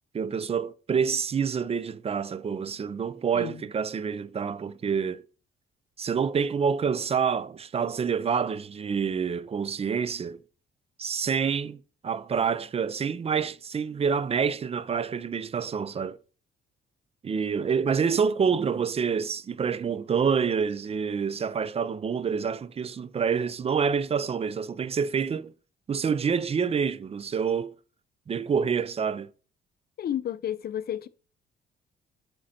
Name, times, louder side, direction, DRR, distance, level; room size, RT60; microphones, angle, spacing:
voice 1, 0.1-5.2 6.0-10.4 11.0-16.2 17.2-25.5 25.9-27.7 28.3-29.3, right 6 dB, 30° right, 0.4 m, -27 dB
voice 2, 30.0-31.1, left 10 dB, 50° left, 0.5 m, -31 dB
7.5 x 4.4 x 4.2 m
cardioid pair, 90°, 20 cm